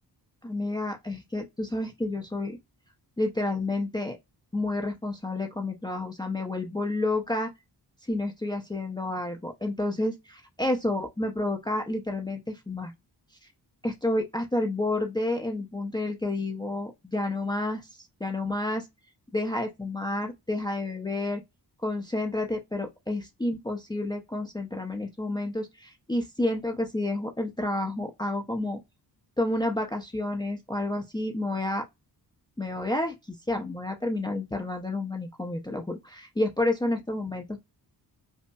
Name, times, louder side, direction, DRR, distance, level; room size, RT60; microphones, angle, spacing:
voice 1, 0.4-2.6 3.2-4.2 4.5-7.5 8.1-12.9 13.8-17.8 18.2-18.9 19.3-21.4 21.8-28.8 29.4-31.9 32.6-37.6, left 2 dB, 10° left, 0.5 m, -30 dB
5.3 x 2.0 x 2.3 m
wide cardioid pair, 105°, 41 cm